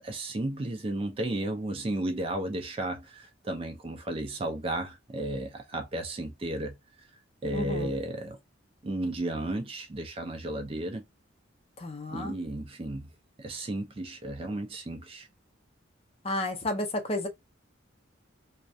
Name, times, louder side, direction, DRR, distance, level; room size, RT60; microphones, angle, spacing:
voice 1, 0.0-6.8 7.4-8.4 8.8-11.0 12.1-13.1 13.4-15.3, right 1 dB, 25° right, 0.4 m, -33 dB
voice 2, 7.5-7.9 11.8-12.4 16.2-17.3, left 1 dB, 30° left, 0.5 m, -32 dB
2.3 x 2.1 x 2.5 m
head